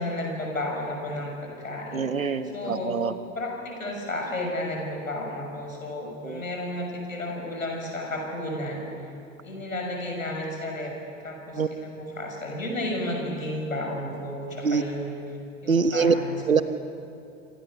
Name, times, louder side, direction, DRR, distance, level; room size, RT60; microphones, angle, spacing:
voice 1, 0.0-2.1 2.5-2.9 3.3-8.9 9.4-11.0 11.2-15.2 15.6-16.4, left 1 dB, 80° left, 1 dB, 6.7 m, -32 dB
voice 2, 1.9-3.1 6.2-6.4 11.6-11.7 14.6-14.8 15.7-16.1 16.5-16.6, right 5 dB, 85° right, 11 dB, 1.4 m, -24 dB
27.5 x 26.0 x 6.8 m, 2.6 s
figure-of-eight pair, 85°, 40 cm